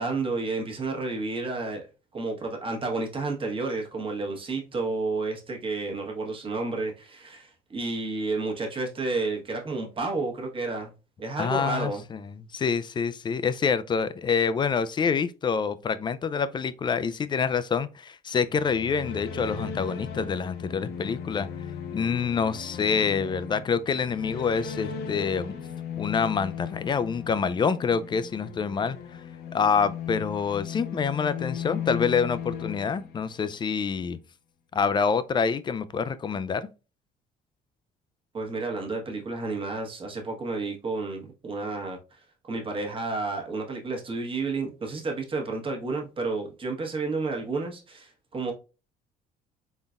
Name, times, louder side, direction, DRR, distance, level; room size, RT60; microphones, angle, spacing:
voice 1, 0.0-1.8 2.1-10.9 11.2-12.0 38.3-42.2 42.4-48.5, right 3 dB, 30° right, 1.2 m, -31 dB
voice 2, 11.4-21.5 21.9-25.6 26.0-29.2 29.5-34.2 34.7-36.7, left 6 dB, 25° left, 0.3 m, -27 dB
sound 1, 18.4-33.7, left 7 dB, 75° left, 0.6 m, -37 dB
4.0 x 3.8 x 2.4 m
cardioid pair, 110°, 17 cm